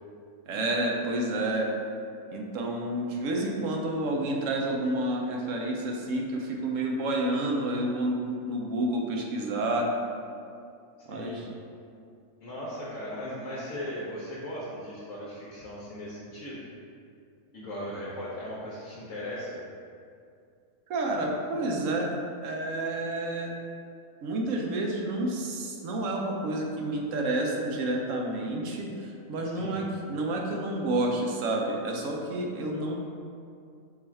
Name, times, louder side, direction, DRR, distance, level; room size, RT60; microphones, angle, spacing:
voice 1, 0.5-1.7 2.3-9.9 11.1-11.5 20.9-22.1 22.4-23.5 24.2-33.0, right 1 dB, 70° right, 0 dB, 0.9 m, -29 dB
voice 2, 11.1-11.4 12.4-16.6 17.5-19.6 29.5-29.8, equal, 65° left, -6 dB, 1.1 m, -38 dB
4.6 x 2.4 x 4.3 m, 2.4 s
omnidirectional pair, 1.5 m